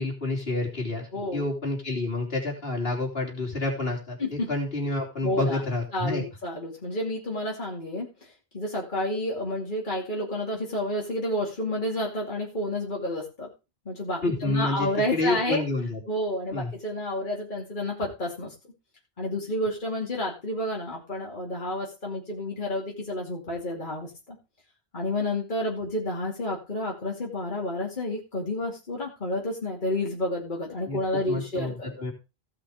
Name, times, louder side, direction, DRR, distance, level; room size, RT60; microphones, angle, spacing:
voice 1, 0.0-6.2 14.2-16.0 16.5-16.7 30.9-32.1, left 2 dB, 70° left, 1 dB, 3.6 m, -29 dB
voice 2, 1.1-1.5 4.2-4.5 5.2-5.6 5.9-13.5 13.9-15.6 16.1-18.5 19.2-24.4 24.9-32.0, left 1 dB, 50° left, -2 dB, 2.8 m, -30 dB
16.0 x 5.8 x 5.0 m, 0.28 s
omnidirectional pair, 1.0 m